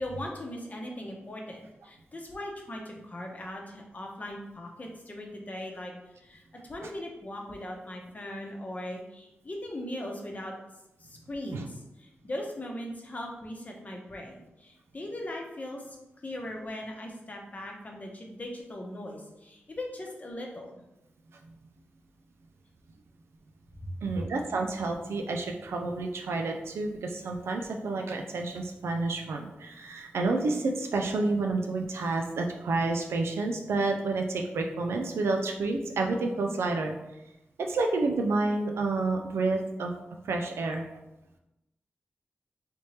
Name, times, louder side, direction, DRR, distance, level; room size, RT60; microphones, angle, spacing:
voice 1, 0.0-5.9 6.2-10.5 11.0-16.0 16.2-20.8 23.8-23.9, left 1 dB, 40° left, 0 dB, 0.8 m, -39 dB
voice 2, 24.0-36.9 37.6-39.9 40.2-40.9, right 3 dB, 85° right, 3 dB, 0.3 m, -29 dB
3.3 x 2.7 x 3.2 m, 0.93 s
cardioid pair, 55°, 4 cm